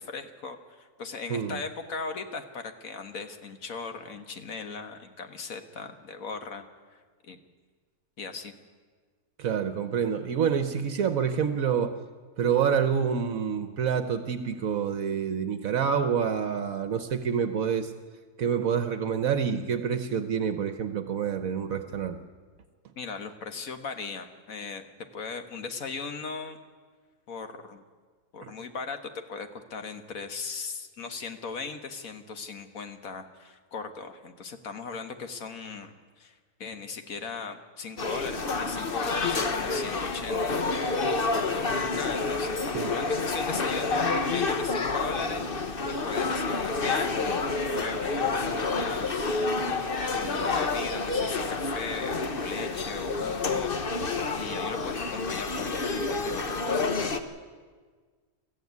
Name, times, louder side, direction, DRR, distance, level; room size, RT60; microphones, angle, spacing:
voice 1, 0.0-6.6 6.9-7.4 8.2-8.5 23.0-24.9 25.1-26.6 27.3-27.8 28.3-36.3 36.6-41.0 41.3-45.4 45.9-47.4 47.7-49.5 50.2-53.7 54.3-56.8, left 4 dB, 65° left, 8 dB, 1.8 m, -38 dB
voice 2, 9.4-11.9 12.4-17.9 18.4-22.2 28.4-28.5 42.7-42.9, right 7 dB, 70° right, 9 dB, 1.3 m, -27 dB
sound 1, 38.0-57.2, left 3 dB, 40° left, 1.2 m, -29 dB
22.0 x 14.0 x 9.5 m, 1.5 s
omnidirectional pair, 1.6 m